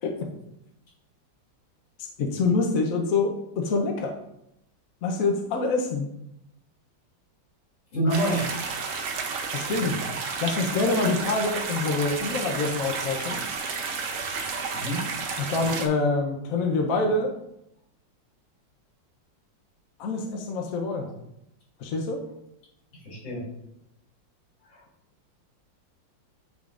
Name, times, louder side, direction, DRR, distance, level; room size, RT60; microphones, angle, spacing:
voice 1, 2.0-4.1 5.0-6.1 9.5-10.0 10.4-13.4 15.4-17.3 20.0-21.1 21.8-22.2, left 3 dB, 60° left, 2 dB, 1.0 m, -26 dB
voice 2, 7.9-8.6 14.7-15.0 20.9-21.1 23.0-23.4 24.7-24.8, right 1 dB, 75° left, -6 dB, 3.3 m, -27 dB
sound 1, 8.1-15.9, right 5 dB, 60° right, 0.9 m, -31 dB
10.5 x 3.7 x 2.4 m, 0.81 s
omnidirectional pair, 2.0 m